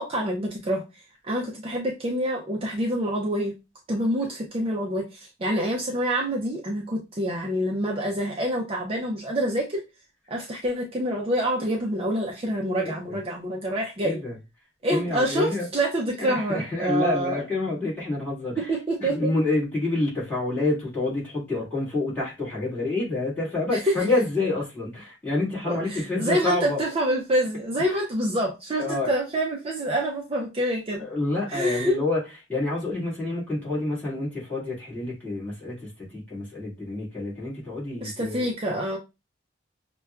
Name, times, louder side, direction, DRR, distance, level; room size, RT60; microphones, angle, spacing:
voice 1, 0.0-3.5 3.9-9.8 10.3-14.2 14.8-17.4 18.7-19.3 23.7-23.9 25.7-31.0 31.5-32.0 38.0-39.0, right 1 dB, 30° right, -1 dB, 0.5 m, -27 dB
voice 2, 14.0-14.4 14.9-15.7 16.2-26.8 27.9-28.0 28.8-29.1 31.0-32.2 32.5-38.5, left 2 dB, 10° left, -8 dB, 1.7 m, -28 dB
5.6 x 2.2 x 2.3 m, 0.26 s
head